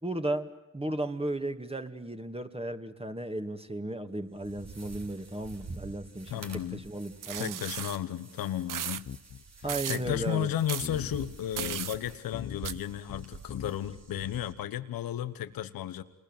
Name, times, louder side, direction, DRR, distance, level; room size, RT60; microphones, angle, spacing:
voice 1, 0.0-6.3 6.7-7.6 9.6-10.5, right 1 dB, 15° right, 7 dB, 2.5 m, -35 dB
sound 1, 4.3-14.5, right 4 dB, 50° right, 3.6 m, -48 dB
voice 2, 6.3-6.8 7.4-9.1 9.7-16.0, left 11 dB, 85° left, 12 dB, 1.2 m, -34 dB
sound 2, 7.2-8.0 8.7-9.0 9.7-10.0 10.7-10.9 11.6-12.0 12.6-12.7, right 10 dB, 65° right, 0.9 m, -35 dB
sound 3, 9.0-10.5 10.8-12.0 12.3-12.8 13.1-14.0 14.2-14.3, left 8 dB, 50° left, 0.9 m, -41 dB
28.0 x 21.0 x 9.2 m, 0.99 s
supercardioid pair, 45°, 34 cm